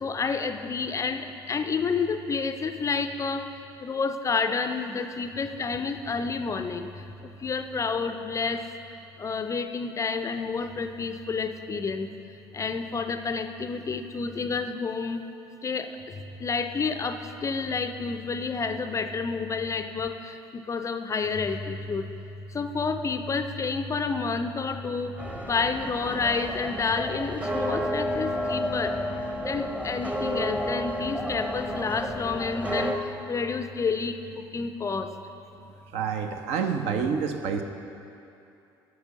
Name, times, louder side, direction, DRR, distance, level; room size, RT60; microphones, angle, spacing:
voice 1, 0.0-3.4 3.8-6.9 7.4-8.6 9.2-12.1 12.5-15.2 15.6-15.9 16.4-22.1 22.5-25.1 25.4-29.0 29.4-35.1, left 4 dB, 25° left, 8 dB, 0.5 m, -29 dB
sound 1, 25.2-33.0, equal, 10° right, 0.9 m, -31 dB
voice 2, 35.9-37.6, right 6 dB, 55° right, 6 dB, 0.7 m, -28 dB
9.3 x 6.0 x 6.4 m, 2.7 s
figure-of-eight pair, 60°, 13 cm